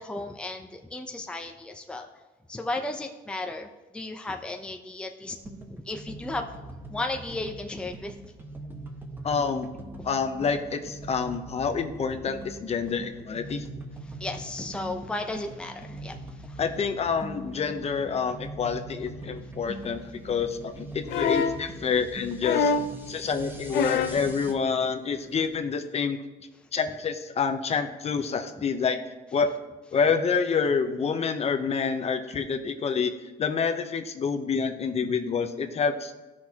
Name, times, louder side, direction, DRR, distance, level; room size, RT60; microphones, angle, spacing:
voice 1, 0.0-2.1 2.5-3.7 3.9-5.4 5.7-6.5 6.9-8.1 9.9-10.1 14.2-16.1 16.5-16.6, left 2 dB, 5° left, 3 dB, 0.6 m, -34 dB
sound 1, 5.2-24.5, right 2 dB, 10° right, 1.0 m, -42 dB
voice 2, 9.2-9.7 10.0-13.6 16.6-20.0 20.2-22.7 23.1-26.2 26.7-29.0 29.3-29.5 29.9-33.1 33.4-36.1, left 5 dB, 40° left, 7 dB, 0.8 m, -27 dB
sound 2, 21.1-21.6 22.4-23.0 23.7-24.2 25.4-25.5, left 5 dB, 75° left, 0.6 m, -25 dB
15.0 x 6.1 x 2.9 m, 1.2 s
cardioid pair, 110°, 17 cm